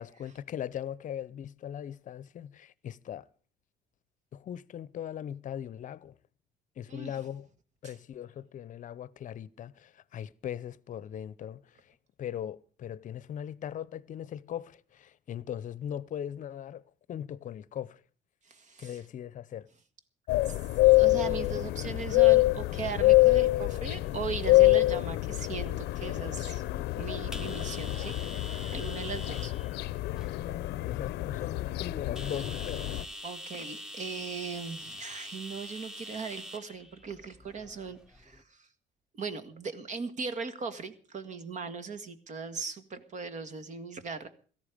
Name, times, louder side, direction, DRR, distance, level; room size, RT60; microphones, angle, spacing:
voice 1, 0.0-3.2 4.3-6.1 6.8-7.5 7.8-16.8 17.1-18.0 18.8-19.7 30.4-33.0, left 10 dB, 50° left, 0.7 m, -39 dB
voice 2, 18.5-19.0 20.5-20.6 20.9-26.6 27.0-29.5 33.2-38.7 39.2-44.3, right 5 dB, 45° right, 1.7 m, -39 dB
sound 1, 20.3-33.1, left 19 dB, 80° left, 0.6 m, -26 dB
sound 2, 22.5-38.4, left 1 dB, 5° right, 1.2 m, -47 dB
17.0 x 14.0 x 5.1 m
cardioid pair, 110°, 17 cm